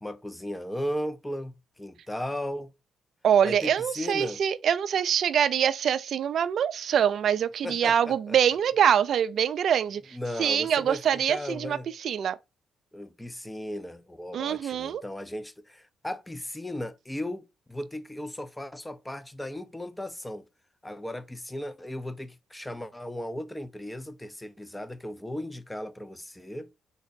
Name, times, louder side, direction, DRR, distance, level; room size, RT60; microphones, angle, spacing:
voice 1, 0.0-2.7 3.4-4.4 7.6-8.4 10.1-11.9 12.9-20.5 20.8-26.7, left 1 dB, 10° left, 0.4 m, -36 dB
voice 2, 3.2-12.4 14.3-15.0, right 8 dB, 60° right, 0.3 m, -24 dB
3.9 x 2.1 x 4.0 m
cardioid pair, 90°, 0 cm